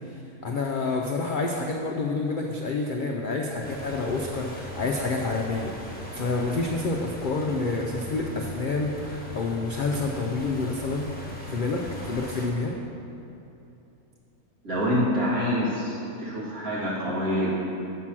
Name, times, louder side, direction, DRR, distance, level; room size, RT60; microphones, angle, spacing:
voice 1, 0.0-11.1 11.5-12.8, left 3 dB, 70° left, 0 dB, 0.4 m, -28 dB
sound 1, 3.6-12.5, equal, 5° left, 1.1 m, -39 dB
voice 2, 14.6-17.5, equal, 70° right, -7 dB, 2.6 m, -26 dB
7.1 x 6.0 x 5.9 m, 2.8 s
omnidirectional pair, 1.5 m